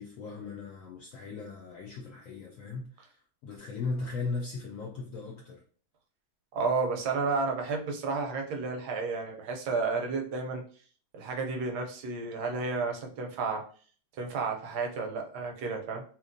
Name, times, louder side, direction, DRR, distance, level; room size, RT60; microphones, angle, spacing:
voice 1, 0.0-5.6, left 4 dB, 75° left, -1 dB, 0.7 m, -38 dB
voice 2, 6.5-10.6 11.1-13.6 14.2-16.0, right 4 dB, 75° right, 3 dB, 1.1 m, -31 dB
2.9 x 2.8 x 2.5 m, 0.43 s
omnidirectional pair, 1.9 m